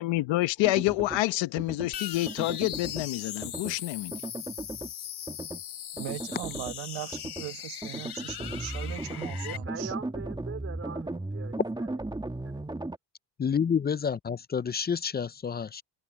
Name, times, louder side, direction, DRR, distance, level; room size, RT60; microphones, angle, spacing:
voice 1, 0.0-4.1, left 18 dB, 85° left, 1.1 m, -28 dB
sound 1, 0.6-1.2 1.6-1.9 2.3-3.1 3.4-3.8 4.1-4.9 5.3-5.6 6.0-6.8 7.1-7.5 7.8-13.0, right 2 dB, 10° right, 2.4 m, -36 dB
sound 2, 1.9-9.6, left 11 dB, 60° left, 3.8 m, -39 dB
voice 2, 5.9-9.9, right 17 dB, 80° right, 1.4 m, -39 dB
voice 3, 9.1-11.9 12.4-12.9, right 5 dB, 30° right, 4.1 m, -42 dB
voice 4, 13.4-15.8, left 7 dB, 25° left, 0.5 m, -29 dB
cardioid pair, 95°, 44 cm